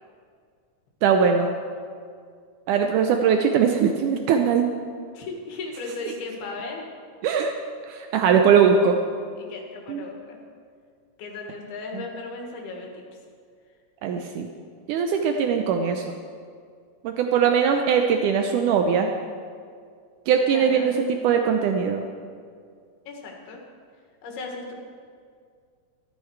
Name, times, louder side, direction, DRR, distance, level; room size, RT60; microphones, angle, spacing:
voice 1, 1.0-1.5 2.7-4.7 7.2-7.5 7.9-9.0 9.9-10.0 11.9-12.0 14.0-14.5 14.9-16.2 17.0-19.1 20.3-22.0, right 6 dB, 90° right, 4 dB, 1.8 m, -21 dB
voice 2, 5.1-6.8 9.2-10.4 11.2-12.9 20.5-20.9 23.1-23.6 24.2-24.7, left 3 dB, 85° left, 0 dB, 3.6 m, -36 dB
13.5 x 12.5 x 4.7 m, 2.1 s
omnidirectional pair, 4.3 m